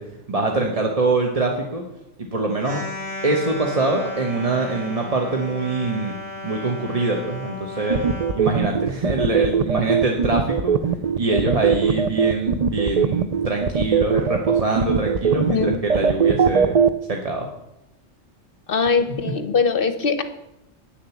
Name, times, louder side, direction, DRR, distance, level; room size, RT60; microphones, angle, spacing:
voice 1, 0.3-1.8 2.3-2.8 3.2-6.1 6.4-8.0 8.3-10.7 11.2-16.8 17.1-17.5, right 2 dB, 30° right, 1 dB, 1.0 m, -24 dB
sound 1, 2.6-8.4, left 2 dB, 50° right, 2.4 m, -34 dB
sound 2, 7.9-16.9, right 7 dB, 85° right, 0.3 m, -19 dB
voice 2, 15.3-15.8 18.7-20.2, left 5 dB, 50° left, 10 dB, 0.9 m, -21 dB
9.2 x 7.4 x 7.0 m, 0.87 s
omnidirectional pair, 1.3 m